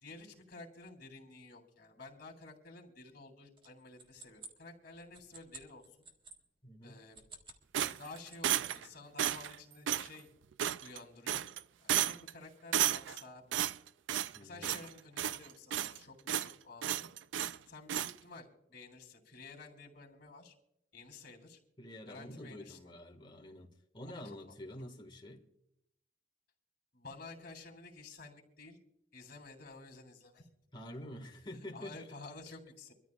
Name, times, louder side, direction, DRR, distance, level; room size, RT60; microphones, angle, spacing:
voice 1, 0.0-6.0 6.8-7.2 7.8-10.3 10.8-11.4 11.8-13.8 14.4-17.1 17.6-20.5 20.9-21.6 22.1-22.8 24.0-24.4 24.7-24.8 26.9-28.8 29.1-30.5 31.5-32.9, left 3 dB, 55° left, 3.2 m, -52 dB
sound 1, 3.6-6.4 7.0-7.7 8.0-8.8, right 3 dB, 30° right, 1.6 m, -53 dB
voice 2, 6.6-7.0 14.3-14.8 21.8-23.7 23.9-25.5 30.7-32.1, left 1 dB, 25° left, 1.9 m, -48 dB
sound 2, 7.7-8.9 9.2-9.5 9.9-10.1 10.6-11.0 11.3-11.6 11.9-12.3 12.7-13.2 13.5-14.4 14.6-14.9 15.2-16.0 16.3-16.5 16.8-17.6 17.9-18.1, right 11 dB, 75° right, 0.4 m, -33 dB
25.0 x 13.5 x 2.4 m
head